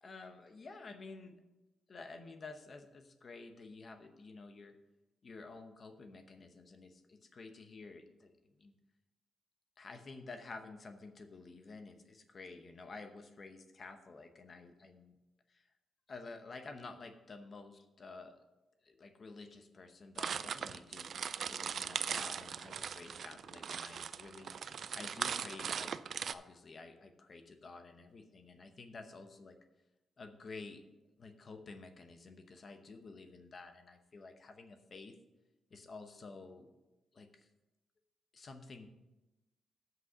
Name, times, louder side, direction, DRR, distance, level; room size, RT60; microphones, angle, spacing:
voice 1, 0.0-1.4 1.9-4.8 5.2-8.7 9.8-15.1 15.5-15.7 16.1-18.4 18.8-24.6 24.9-29.6 30.2-30.8 31.2-35.2 35.7-36.7 37.1-37.5 38.3-38.9, left 3 dB, 35° left, 7 dB, 0.8 m, -51 dB
sound 1, 20.2-26.3, right 7 dB, 45° right, 0.3 m, -39 dB
7.9 x 6.2 x 6.1 m, 1.0 s
wide cardioid pair, 170°, 0 cm